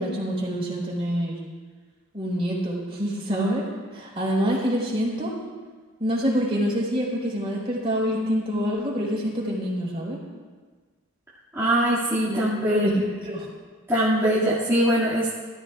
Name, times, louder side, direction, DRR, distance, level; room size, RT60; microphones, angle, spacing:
voice 1, 0.0-1.4 2.1-5.3 6.0-10.2 12.3-13.5, equal, 25° right, -5 dB, 4.4 m, -26 dB
voice 2, 11.5-12.9 13.9-15.3, equal, 10° right, -12 dB, 2.2 m, -22 dB
22.0 x 14.0 x 2.4 m, 1.4 s
head